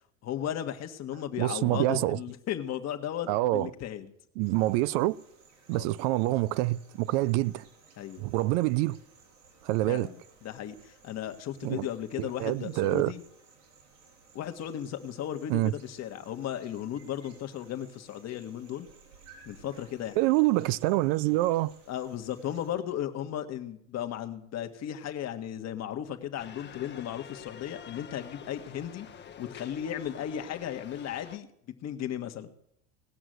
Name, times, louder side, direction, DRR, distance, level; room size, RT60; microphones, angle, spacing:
voice 1, 0.2-4.1 5.7-5.9 8.0-8.2 9.9-10.2 10.4-13.2 14.3-18.9 19.4-20.2 21.9-29.1 29.4-31.5 31.8-32.5, left 10 dB, 45° left, 1.5 m, -35 dB
voice 2, 1.4-2.2 3.3-3.7 4.4-5.1 5.7-7.6 8.2-9.0 9.6-10.1 11.6-11.9 12.2-13.1 15.5-15.7 20.2-21.7, right 18 dB, 65° right, 0.5 m, -26 dB
sound 1, 4.4-22.7, right 5 dB, 85° right, 4.8 m, -58 dB
sound 2, 26.4-31.4, left 8 dB, 30° left, 1.0 m, -48 dB
18.5 x 6.2 x 7.8 m
supercardioid pair, 90°, 36 cm